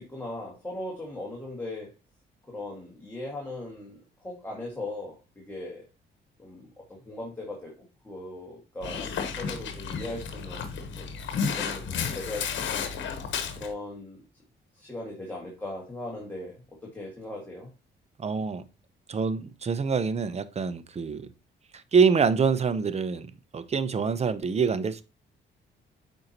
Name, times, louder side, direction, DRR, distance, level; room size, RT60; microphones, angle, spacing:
voice 1, 0.0-1.9 2.5-5.9 6.4-10.7 11.0-11.1 11.6-12.7 13.6-14.2 14.7-16.6 16.8-17.7, left 2 dB, 10° left, 1.8 m, -39 dB
Dog, 8.8-13.7, left 6 dB, 70° left, 1.1 m, -32 dB
voice 2, 18.2-18.6 19.1-21.3 21.9-23.3 23.5-25.0, right 5 dB, 30° right, 0.6 m, -25 dB
7.7 x 4.5 x 2.9 m
cardioid pair, 90°, 20 cm